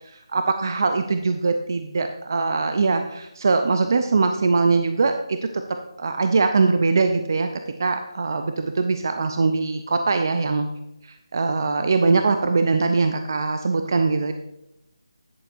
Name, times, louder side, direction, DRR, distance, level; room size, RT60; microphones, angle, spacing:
voice 1, 0.3-5.4 6.0-7.5 7.8-10.7 11.3-14.3, right 4 dB, 40° right, 7 dB, 0.5 m, -21 dB
10.5 x 8.2 x 2.6 m, 0.86 s
figure-of-eight pair, 170°, 3 cm